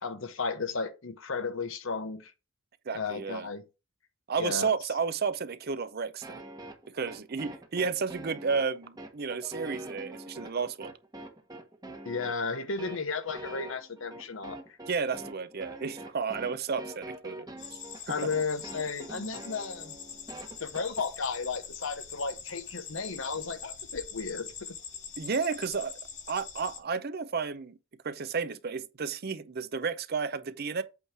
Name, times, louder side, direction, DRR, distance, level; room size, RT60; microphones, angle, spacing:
voice 1, 0.0-2.3 2.9-3.6 4.4-4.7 12.0-14.6 18.1-20.0 20.6-24.5, left 4 dB, 70° left, 1.0 m, -34 dB
voice 2, 2.9-3.5 4.3-6.4 6.9-10.9 14.9-17.5 18.1-18.2 25.2-25.9 26.3-27.8 28.0-30.8, right 5 dB, 50° right, 0.6 m, -32 dB
sound 1, 6.2-21.1, right 1 dB, 20° right, 1.1 m, -44 dB
sound 2, 17.6-26.8, left 7 dB, 35° left, 1.2 m, -44 dB
8.2 x 3.1 x 5.9 m
head